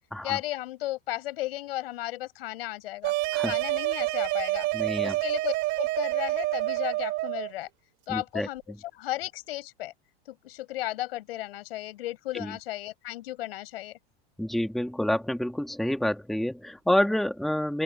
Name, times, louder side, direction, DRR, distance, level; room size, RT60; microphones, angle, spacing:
voice 1, 0.2-3.1 3.4-4.7 5.0-7.7 8.1-9.9 10.3-14.0, left 16 dB, 75° left, 6.3 m, -35 dB
sound 1, 3.0-7.5, right 19 dB, 40° right, 2.4 m, -28 dB
voice 2, 4.7-5.2 8.1-8.5 12.3-12.5 14.4-17.8, left 1 dB, ahead, 1.7 m, -28 dB
open air
supercardioid pair, 165°, 30 cm